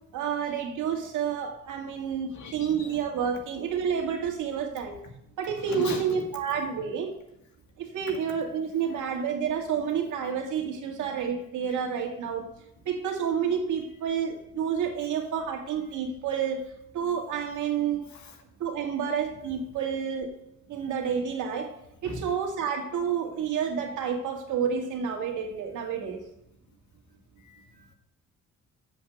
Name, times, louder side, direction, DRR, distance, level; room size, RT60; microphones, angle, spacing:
voice 1, 0.1-5.0 5.4-7.1 7.8-12.5 12.9-16.6 16.9-18.1 18.6-20.3 20.7-21.7 22.0-26.2, right 7 dB, 80° right, 2 dB, 2.0 m, -29 dB
voice 2, 2.3-3.0 5.6-6.1 8.9-9.0 18.1-18.4 22.0-22.2 27.4-27.9, left 3 dB, 65° left, 4 dB, 2.0 m, -39 dB
7.7 x 7.6 x 6.7 m, 0.81 s
cardioid pair, 90°, 30 cm